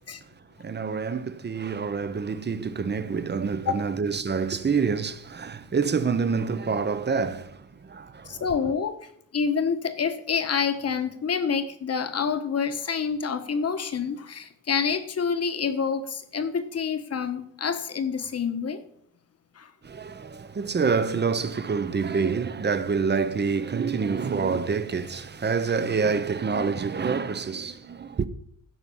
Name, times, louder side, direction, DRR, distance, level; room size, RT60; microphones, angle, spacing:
voice 1, 0.6-8.5 19.8-28.3, right 5 dB, 30° right, 0.8 m, -27 dB
voice 2, 8.2-18.8 19.5-19.7, left 6 dB, 40° left, 1.3 m, -27 dB
15.5 x 5.9 x 7.1 m
wide cardioid pair, 150°, 36 cm